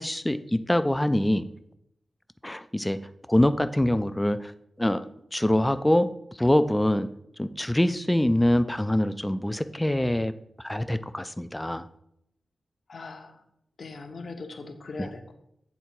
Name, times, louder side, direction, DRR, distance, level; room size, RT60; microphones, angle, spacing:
voice 1, 0.0-1.5 2.4-3.0 3.3-4.5 4.8-5.0 5.3-6.1 6.4-7.1 7.4-10.3 10.6-11.9, left 1 dB, 10° left, 11 dB, 0.3 m, -24 dB
voice 2, 12.9-13.4 13.8-15.3, left 3 dB, 60° left, 5 dB, 0.8 m, -40 dB
8.2 x 3.6 x 4.4 m, 0.76 s
wide cardioid pair, 125°, 0 cm